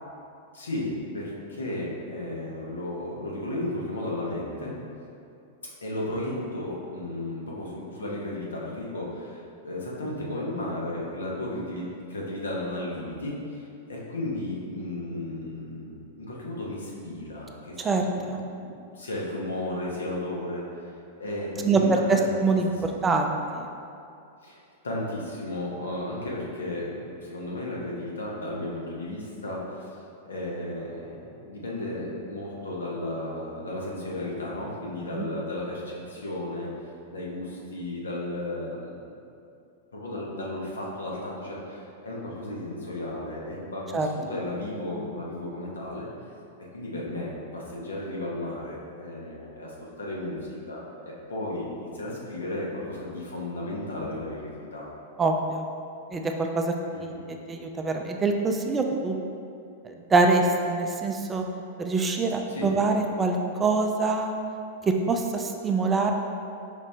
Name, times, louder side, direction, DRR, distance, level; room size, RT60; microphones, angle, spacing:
voice 1, 0.5-4.7 5.8-13.6 13.9-18.3 18.6-20.9 21.2-21.9 22.1-22.6 22.9-23.0 24.4-24.6 24.8-30.0 30.2-36.7 37.1-39.2 39.9-46.1 46.7-54.9 56.9-57.3 62.5-62.7, left 1 dB, 80° left, -4 dB, 0.9 m, -34 dB
voice 2, 17.8-18.4 21.6-23.7 35.1-35.3 43.9-44.1 55.2-55.6 56.1-56.7 57.0-57.1 57.5-59.2 59.8-61.4 61.8-64.3 64.9-66.1, right 3 dB, 20° right, 3 dB, 0.4 m, -24 dB
5.0 x 2.7 x 3.3 m, 2.5 s
hypercardioid pair, 100°, 0 cm